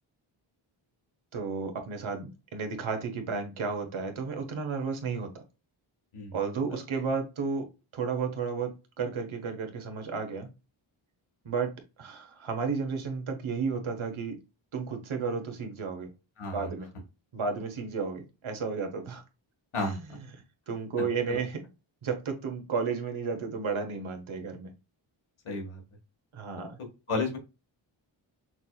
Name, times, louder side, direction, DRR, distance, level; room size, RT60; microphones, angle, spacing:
voice 1, 1.3-5.3 6.3-7.7 7.9-10.5 11.4-11.7 12.0-14.4 14.7-16.1 16.5-16.9 17.3-19.2 19.8-20.0 20.7-21.6 22.0-24.7 26.3-26.8, right 5 dB, 75° right, 1.4 m, -32 dB
voice 2, 16.4-16.7 19.7-20.2 21.0-21.4 25.5-25.8 27.1-27.4, left 3 dB, 80° left, 1.9 m, -33 dB
5.9 x 2.9 x 2.3 m
wide cardioid pair, 85°, 49 cm